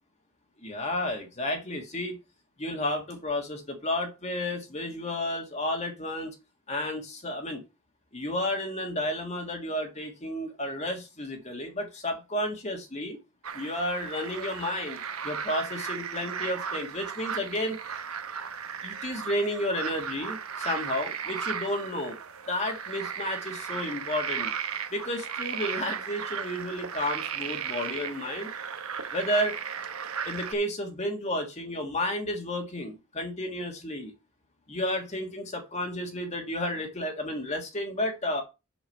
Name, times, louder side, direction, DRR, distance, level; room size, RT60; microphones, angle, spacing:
voice 1, 0.6-2.2 2.6-6.4 6.7-7.6 8.1-13.2 13.5-17.8 18.8-22.2 22.5-24.5 24.9-28.5 29.1-29.5 30.3-34.1 34.7-38.4, left 1 dB, 30° left, 3 dB, 1.6 m, -32 dB
sound 1, 13.4-30.5, right 7 dB, 80° right, 1.1 m, -36 dB
6.4 x 6.3 x 6.4 m, 0.27 s
head